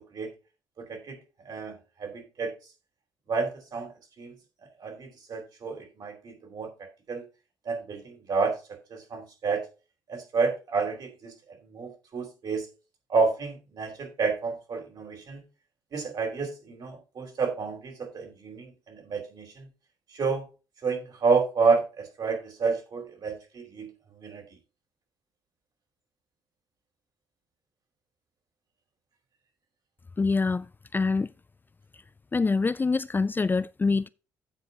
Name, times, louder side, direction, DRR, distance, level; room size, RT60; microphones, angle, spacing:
voice 1, 0.8-1.2 1.5-2.5 3.3-3.9 4.2-4.3 4.8-7.2 7.7-8.6 8.9-9.6 10.1-11.3 11.6-12.7 13.1-15.4 15.9-19.7 20.1-20.4 20.8-23.9 24.2-24.4, right 4 dB, 50° right, 3.9 m, -30 dB
voice 2, 30.2-31.3 32.3-34.1, left 4 dB, 20° left, 0.4 m, -25 dB
15.5 x 5.2 x 2.8 m
figure-of-eight pair, 45°, 9 cm